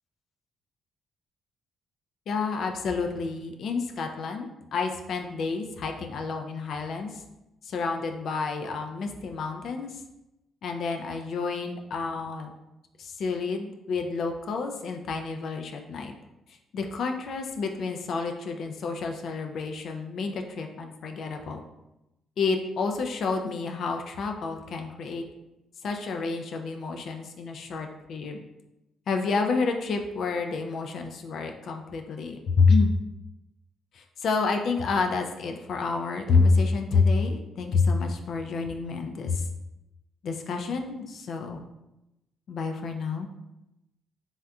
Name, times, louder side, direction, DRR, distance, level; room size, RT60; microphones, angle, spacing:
voice 1, 2.3-7.2 7.6-10.0 10.6-12.5 13.0-16.1 16.7-21.6 22.4-25.2 25.8-28.4 29.1-32.9 33.9-39.4 40.2-41.6 42.5-43.3, left 4 dB, 65° left, 4 dB, 0.3 m, -28 dB
3.5 x 2.6 x 2.2 m, 0.92 s
cardioid pair, 90°, 0 cm